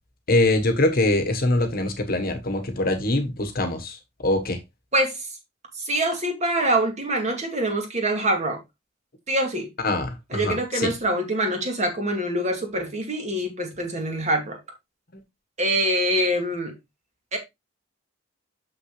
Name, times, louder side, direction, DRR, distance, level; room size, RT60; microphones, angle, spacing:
voice 1, 0.3-4.6 9.8-10.9, left 2 dB, 50° left, 1.3 m, -23 dB
voice 2, 4.9-5.3 5.8-8.6 9.3-9.7 10.3-14.6 15.6-16.7 17.3-17.4, right 1 dB, 35° right, 2.3 m, -25 dB
7.0 x 5.9 x 3.2 m
head